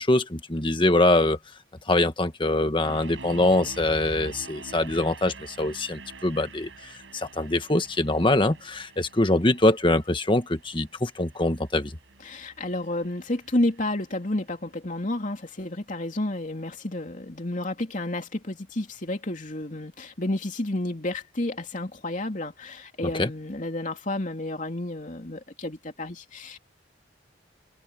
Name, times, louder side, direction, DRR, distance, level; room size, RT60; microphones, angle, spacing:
voice 1, 0.0-1.4 1.9-12.0 23.1-23.3, left 2 dB, 25° left, 1.4 m, -23 dB
sound 1, 2.8-13.9, right 3 dB, 80° right, 5.4 m, -45 dB
voice 2, 12.2-26.6, left 1 dB, 40° left, 2.9 m, -31 dB
head